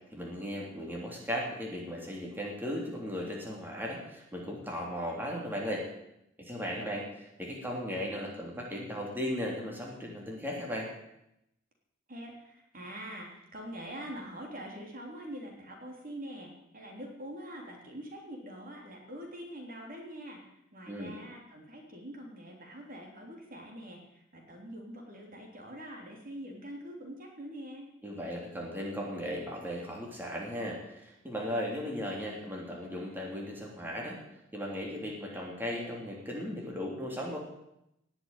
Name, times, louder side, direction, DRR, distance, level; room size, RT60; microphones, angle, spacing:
voice 1, 0.1-5.8 6.4-7.1 7.4-10.9 20.9-21.2 28.0-34.2 34.5-37.4, equal, 10° right, -2 dB, 3.2 m, -36 dB
voice 2, 12.1-20.4 20.7-27.9, equal, 45° right, 1 dB, 3.4 m, -44 dB
19.0 x 7.2 x 9.1 m, 0.84 s
head